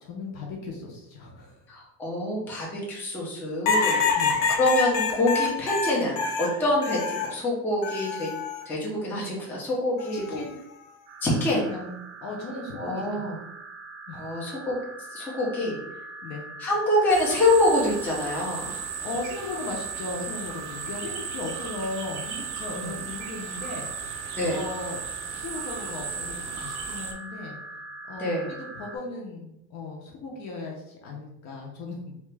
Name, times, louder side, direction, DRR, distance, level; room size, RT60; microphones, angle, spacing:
voice 1, 0.0-1.6 4.1-4.5 10.1-10.5 11.5-13.3 14.1-14.3 16.2-16.5 19.0-25.0 25.3-27.6 28.1-32.1, left 3 dB, 50° left, -1 dB, 0.6 m, -37 dB
voice 2, 1.7-4.0 4.6-8.3 8.7-10.4 11.2-11.6 12.8-13.4 14.1-14.8 15.1-15.8 16.6-18.7 22.7-22.9 24.3-24.6 28.2-28.5, left 1 dB, 5° left, -5 dB, 0.5 m, -26 dB
sound 1, 3.7-7.4 7.8-8.6 10.0-10.4, left 5 dB, 90° left, 0.7 m, -26 dB
sound 2, 11.1-29.0, right 4 dB, 45° right, 0.6 m, -42 dB
sound 3, 17.1-27.1, right 5 dB, 80° right, 0.7 m, -36 dB
2.8 x 2.2 x 3.2 m, 0.81 s
cardioid pair, 165°, 37 cm